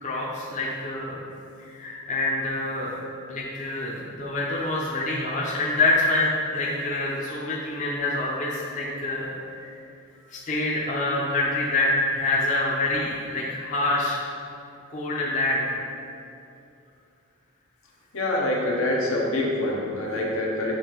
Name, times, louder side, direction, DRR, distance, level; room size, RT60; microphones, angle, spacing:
voice 1, 0.0-1.2 1.6-3.0 3.3-9.3 9.6-9.7 10.3-14.2 14.9-15.6, left 2 dB, 35° left, -5 dB, 0.5 m, -26 dB
voice 2, 18.1-20.7, left 1 dB, 80° left, -2 dB, 0.8 m, -25 dB
6.7 x 2.5 x 2.9 m, 2.5 s
head